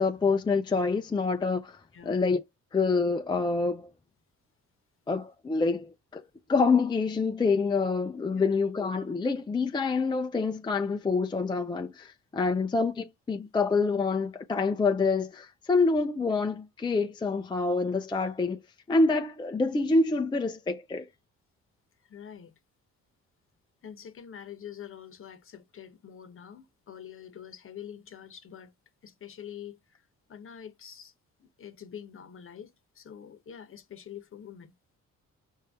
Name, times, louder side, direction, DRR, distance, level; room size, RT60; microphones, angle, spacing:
voice 1, 0.0-2.4 2.7-3.9 5.1-6.2 6.5-18.6 18.9-21.1, left 4 dB, 15° left, 0.4 m, -27 dB
voice 2, 1.9-2.2 8.4-8.5 22.0-22.5 23.8-28.7 29.0-31.1 31.4-34.7, left 9 dB, 45° left, 0.9 m, -46 dB
5.5 x 2.6 x 3.5 m
cardioid pair, 90°, 30 cm